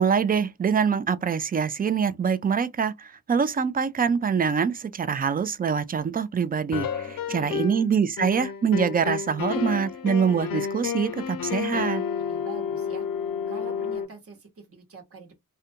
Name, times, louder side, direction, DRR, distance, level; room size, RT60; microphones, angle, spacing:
voice 1, 0.0-6.9 7.3-12.0, right 6 dB, 30° right, 0.3 m, -24 dB
sound 1, 6.7-7.9 8.2-14.1, left 7 dB, 75° left, 0.5 m, -30 dB
voice 2, 6.9-7.6 12.2-13.1 13.5-15.4, right 4 dB, 45° right, 1.1 m, -45 dB
2.4 x 2.2 x 2.7 m
cardioid pair, 75°, 34 cm